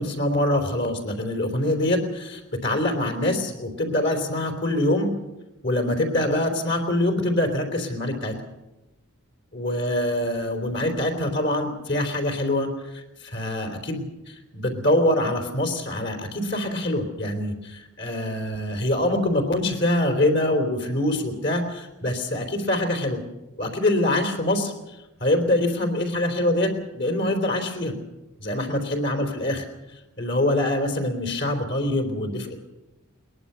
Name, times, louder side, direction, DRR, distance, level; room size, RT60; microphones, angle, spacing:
voice 1, 0.0-5.1 5.6-8.3 9.5-23.2 23.6-28.0 28.4-32.6, left 1 dB, 50° left, 4 dB, 3.7 m, -25 dB
22.0 x 20.5 x 6.9 m, 1.0 s
head